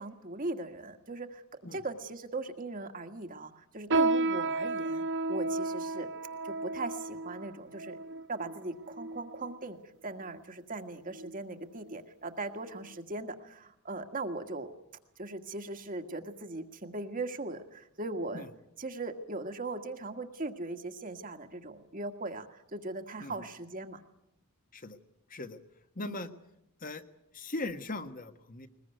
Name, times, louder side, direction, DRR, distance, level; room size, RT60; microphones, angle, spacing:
voice 1, 0.0-1.4 1.7-6.1 6.4-8.0 8.3-14.7 15.2-18.5 18.8-24.0 26.1-26.3, right 2 dB, 40° right, 5 dB, 1.7 m, -39 dB
sound 1, 3.9-9.6 10.2-10.4 11.1-11.4 11.8-12.0 12.7-12.8, right 2 dB, 55° right, 0.9 m, -32 dB
voice 2, 25.9-26.3 26.8-27.0 27.3-28.7, left 2 dB, 40° left, 9 dB, 1.5 m, -39 dB
21.5 x 21.0 x 9.2 m, 0.82 s
head